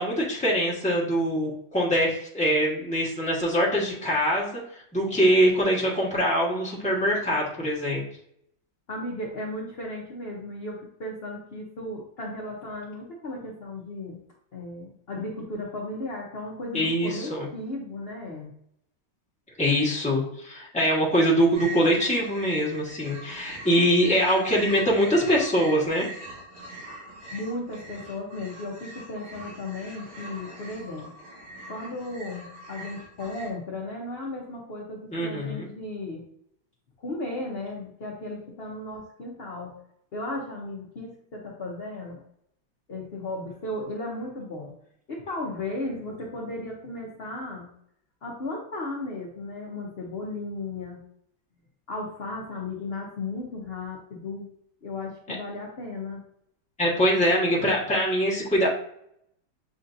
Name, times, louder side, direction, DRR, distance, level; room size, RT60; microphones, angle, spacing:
voice 1, 0.0-8.0 16.7-17.5 19.6-26.1 35.1-35.7 56.8-58.7, equal, 5° left, -5 dB, 0.9 m, -23 dB
voice 2, 8.9-14.2 14.5-18.5 27.3-31.1 31.7-36.2 37.0-39.8 40.1-42.2 42.9-44.8 45.1-47.7 48.2-51.0 51.9-54.5 54.8-56.2, left 2 dB, 55° left, -2 dB, 0.6 m, -35 dB
sound 1, 21.5-33.5, right 1 dB, 55° right, 2.2 m, -42 dB
7.7 x 2.6 x 2.6 m, 0.71 s
omnidirectional pair, 2.1 m